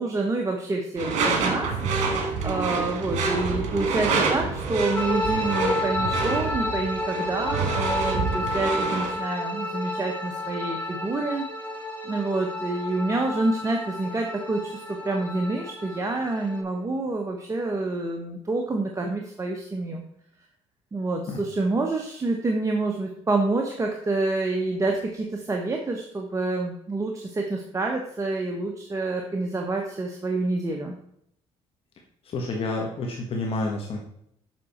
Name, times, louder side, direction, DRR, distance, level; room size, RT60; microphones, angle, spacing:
voice 1, 0.0-11.4 12.0-20.0 20.9-31.0, right 2 dB, 25° right, 2 dB, 1.1 m, -28 dB
Door / Screech, 1.0-9.2, right 4 dB, 80° right, 1.8 m, -27 dB
sound 1, 5.0-16.6, left 2 dB, 15° left, 2.6 m, -31 dB
voice 2, 32.2-34.0, left 2 dB, 50° left, 0 dB, 1.5 m, -29 dB
7.5 x 6.2 x 4.3 m, 0.73 s
cardioid pair, 95°, 12 cm